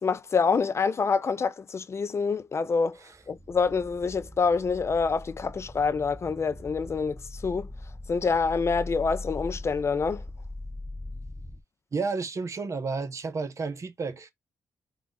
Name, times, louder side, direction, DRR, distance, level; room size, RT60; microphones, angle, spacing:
voice 1, 0.0-3.0 3.3-7.7 8.1-10.2, left 5 dB, 40° left, 0.4 m, -26 dB
sound 1, 3.2-11.6, left 1 dB, 5° right, 0.8 m, -41 dB
voice 2, 11.9-14.3, right 4 dB, 50° right, 0.8 m, -31 dB
3.5 x 2.4 x 3.8 m
supercardioid pair, 55°, 7 cm